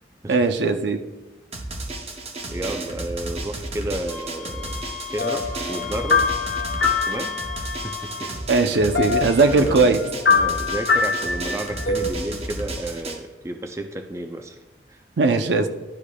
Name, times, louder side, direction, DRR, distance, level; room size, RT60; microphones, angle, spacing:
voice 1, 0.3-1.0 8.5-10.0 15.2-15.7, right 3 dB, 75° right, 8 dB, 0.5 m, -19 dB
Drum, 1.5-13.2, right 2 dB, 35° right, 0.8 m, -33 dB
voice 2, 2.5-4.8 5.1-6.3 7.1-8.3 8.8-8.9 9.5-10.0 10.3-14.6 14.9-15.0, right 1 dB, 15° right, 6 dB, 0.3 m, -32 dB
Wind instrument woodwind instrument, 4.1-8.3, left 7 dB, 15° left, 1.1 m, -36 dB
sound 1, 5.2-7.9 8.3-8.4 8.7-12.1, left 5 dB, 65° left, 0.8 m, -24 dB
11.5 x 4.8 x 2.3 m, 1.1 s
head